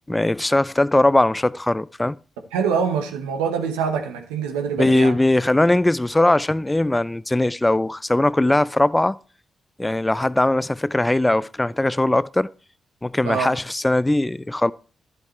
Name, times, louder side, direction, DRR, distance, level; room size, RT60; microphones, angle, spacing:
voice 1, 0.1-2.2 4.8-9.2 9.8-12.5 13.0-14.7, left 1 dB, 15° left, 0.4 m, -20 dB
voice 2, 2.5-5.2 13.2-13.5, right 6 dB, 85° right, 1.0 m, -24 dB
11.0 x 7.2 x 3.1 m
hypercardioid pair, 40°, 0 cm